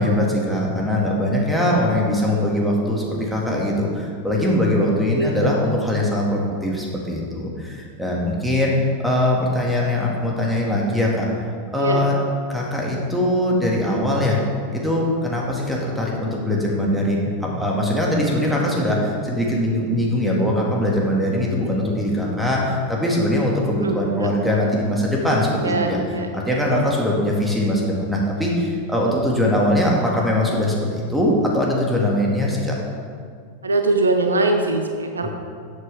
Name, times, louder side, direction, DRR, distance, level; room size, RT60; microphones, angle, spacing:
voice 1, 0.0-8.7 9.0-11.3 11.7-12.1 12.5-14.4 14.7-32.8 35.2-35.3, left 1 dB, 5° right, -3 dB, 2.1 m, -21 dB
voice 2, 23.8-24.3 25.6-26.3 33.6-35.3, right 2 dB, 75° right, 5 dB, 0.8 m, -22 dB
12.5 x 8.2 x 3.5 m, 2.2 s
figure-of-eight pair, 90°, 0 cm